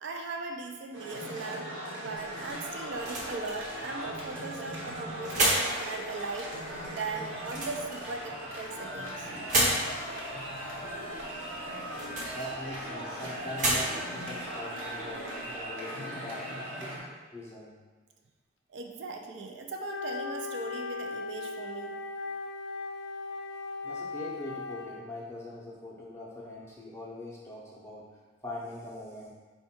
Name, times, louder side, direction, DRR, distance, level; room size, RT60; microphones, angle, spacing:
voice 1, 0.0-1.7 2.0-6.5 6.9-9.3 18.7-22.0, right 3 dB, 55° right, 3 dB, 0.4 m, -39 dB
sound 1, 0.9-17.0, equal, 75° right, 1.1 m, -39 dB
sound 2, 2.2-15.7, right 1 dB, 35° right, 0.8 m, -34 dB
voice 2, 12.3-17.0 17.3-17.7 23.8-28.1 28.4-29.3, left 1 dB, 15° left, -5 dB, 0.6 m, -42 dB
Wind instrument woodwind instrument, 19.8-25.0, left 3 dB, 65° left, 0.4 m, -38 dB
4.5 x 2.2 x 4.2 m, 1.4 s
head